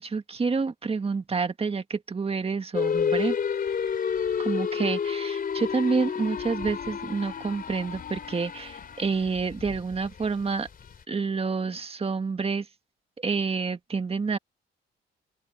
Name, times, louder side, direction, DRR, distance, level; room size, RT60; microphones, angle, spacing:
voice 1, 0.0-3.4 4.4-10.7 11.1-12.7 13.2-14.4, right 4 dB, 30° right, 1.8 m, -28 dB
sound 1, 2.7-11.0, left 7 dB, 45° left, 4.0 m, -30 dB
open air
cardioid pair, 90°, 20 cm